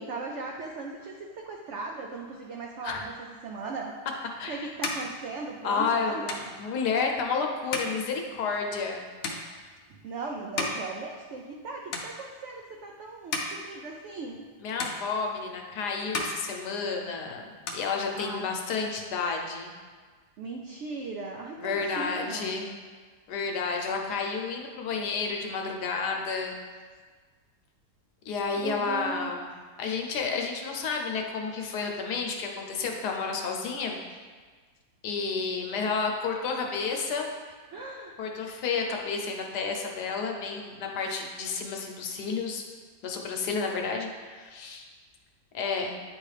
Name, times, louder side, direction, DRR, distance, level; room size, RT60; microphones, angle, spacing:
voice 1, 0.0-4.0 4.5-6.4 9.9-14.5 18.1-18.5 20.4-22.5 28.6-29.4 37.7-38.2, right 3 dB, 85° right, 0 dB, 0.6 m, -38 dB
sound 1, 4.0-11.6 11.9-12.6 13.0-14.5 14.8-15.7 16.0-17.2 17.5-18.6, left 3 dB, 60° left, 0.8 m, -37 dB
voice 2, 4.4-4.7 5.6-9.0 14.6-19.7 21.6-22.7 23.3-26.6 28.3-29.5 29.8-34.0 35.0-37.3 38.2-42.6 43.0-44.8 45.5-45.9, left 5 dB, 75° left, 1 dB, 1.2 m, -31 dB
9.3 x 3.1 x 3.2 m, 1.5 s
omnidirectional pair, 1.8 m